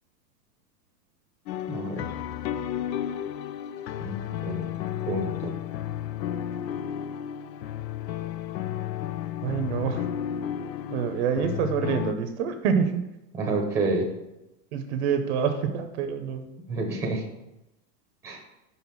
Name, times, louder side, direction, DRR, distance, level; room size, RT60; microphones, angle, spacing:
sound 1, 1.5-12.1, left 10 dB, 85° left, 0.6 m, -33 dB
voice 1, 1.7-2.1 4.0-4.7 5.1-5.5 13.3-14.1 16.7-17.2 18.2-18.4, right 2 dB, 5° right, 1 dB, 0.8 m, -29 dB
voice 2, 9.4-10.1 10.9-13.1 14.7-16.4, right 7 dB, 45° right, 7 dB, 0.7 m, -26 dB
5.6 x 5.6 x 5.8 m, 0.94 s
supercardioid pair, 145°, 49 cm